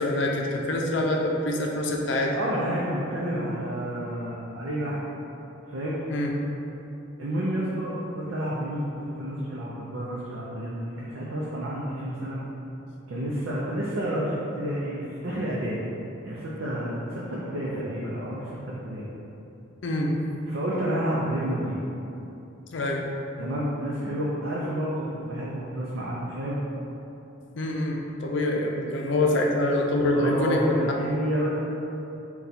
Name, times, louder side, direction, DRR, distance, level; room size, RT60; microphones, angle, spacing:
voice 1, 0.0-2.4 6.1-6.3 19.8-20.1 22.7-23.0 27.5-30.6, left 1 dB, 65° left, 0 dB, 0.5 m, -25 dB
voice 2, 2.3-5.0 5.7-6.0 7.2-12.4 13.1-15.8 16.2-19.1 20.5-21.8 23.4-26.6 29.3-29.4 30.1-31.5, equal, 80° right, -6 dB, 0.5 m, -30 dB
3.9 x 2.3 x 4.1 m, 2.9 s
head